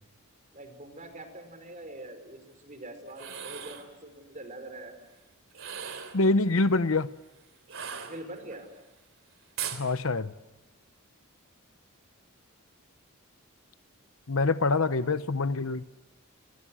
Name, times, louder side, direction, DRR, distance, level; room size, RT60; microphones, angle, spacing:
voice 1, 0.5-5.0 8.0-8.7 14.9-15.2, right 1 dB, 35° right, 5.1 m, -44 dB
sound 1, 3.1-3.9 5.5-6.2 7.7-8.6 9.6-9.9, right 8 dB, 65° right, 3.4 m, -38 dB
voice 2, 6.1-7.1 9.7-10.3 14.3-15.8, left 3 dB, 65° left, 0.9 m, -25 dB
29.0 x 27.5 x 6.3 m
head